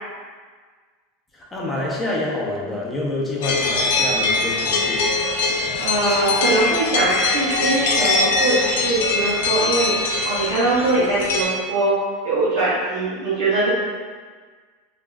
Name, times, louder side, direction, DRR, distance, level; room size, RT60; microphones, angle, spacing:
voice 1, 1.3-5.1, left 2 dB, 15° left, -4 dB, 0.7 m, -27 dB
sound 1, 3.4-11.4, left 3 dB, 75° left, 0.4 m, -22 dB
voice 2, 5.8-11.9 12.2-13.7, right 2 dB, 70° right, -9 dB, 0.7 m, -22 dB
3.2 x 2.4 x 2.3 m, 1.5 s
supercardioid pair, 115°, 0 cm